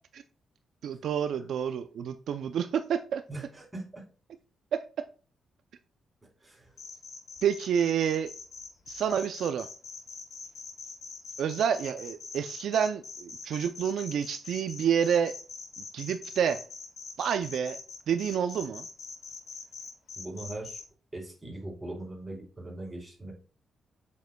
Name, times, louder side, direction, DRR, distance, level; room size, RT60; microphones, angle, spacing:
voice 1, 0.8-3.2 4.7-5.0 7.4-8.3 8.9-9.7 11.4-15.3 15.8-16.6 17.2-17.8 18.1-18.9, right 8 dB, 70° right, 0.4 m, -29 dB
voice 2, 3.3-4.0 6.4-6.7 20.2-20.8 21.1-23.3, right 2 dB, 10° right, 4.0 m, -40 dB
sound 1, 6.8-20.8, left 5 dB, 60° left, 2.5 m, -43 dB
7.8 x 7.4 x 2.3 m
cardioid pair, 125°, 0 cm